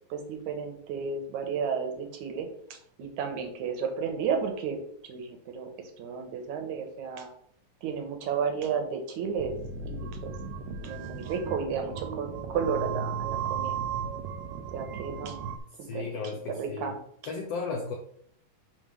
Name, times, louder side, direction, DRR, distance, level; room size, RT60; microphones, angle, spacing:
voice 1, 0.1-5.7 6.0-7.3 7.8-9.6 9.8-10.3 10.8-13.7 14.7-15.4 15.8-16.1 16.5-17.0, right 6 dB, 65° right, 5 dB, 2.2 m, -33 dB
sound 1, 9.4-15.6, right 6 dB, 85° right, 2.4 m, -35 dB
voice 2, 15.8-17.0 17.2-17.9, left 4 dB, 80° left, 1 dB, 1.4 m, -35 dB
6.9 x 3.6 x 6.2 m, 0.67 s
omnidirectional pair, 4.0 m